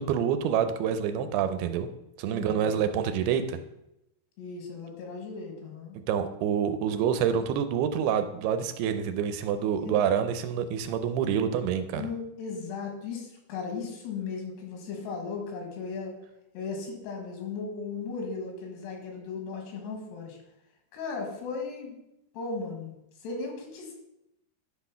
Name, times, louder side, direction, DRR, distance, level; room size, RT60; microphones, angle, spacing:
voice 1, 0.0-1.9 2.2-3.6 6.1-12.0, right 8 dB, 80° right, 9 dB, 2.6 m, -27 dB
voice 2, 2.3-2.9 4.4-6.0 9.8-10.0 12.0-16.2 16.5-20.4 20.9-22.0 22.3-22.9 23.2-23.9, left 4 dB, 85° left, 2 dB, 3.9 m, -36 dB
10.5 x 4.2 x 5.5 m, 0.86 s
omnidirectional pair, 4.6 m